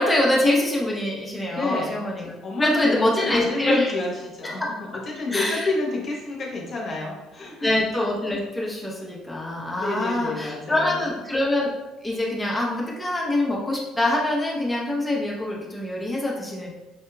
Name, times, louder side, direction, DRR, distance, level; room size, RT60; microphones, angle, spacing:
voice 1, 0.0-2.3 2.6-3.9 4.4-4.7 5.3-5.7 7.6-11.7 12.0-16.7, left 1 dB, 10° left, -3 dB, 0.9 m, -24 dB
voice 2, 1.4-2.1 2.4-4.1 4.4-7.7 9.8-11.1, left 3 dB, 40° left, -3 dB, 1.1 m, -29 dB
5.7 x 2.8 x 2.3 m, 1.1 s
figure-of-eight pair, 50°, 0 cm